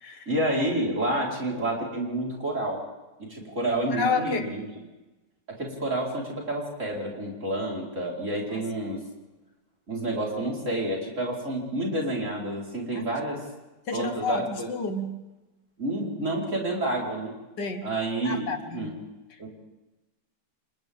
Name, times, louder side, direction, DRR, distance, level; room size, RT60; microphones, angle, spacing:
voice 1, 0.3-2.8 3.2-4.8 5.5-9.0 9.9-13.4 13.9-14.7 15.8-17.3 17.8-18.9 19.4-19.5, right 1 dB, 40° right, -3 dB, 5.0 m, -29 dB
voice 2, 3.9-4.6 8.5-8.6 12.9-13.1 13.9-15.2 17.6-17.9 18.2-18.9, left 4 dB, 75° left, 7 dB, 2.2 m, -30 dB
29.0 x 26.5 x 3.7 m, 1.1 s
omnidirectional pair, 1.9 m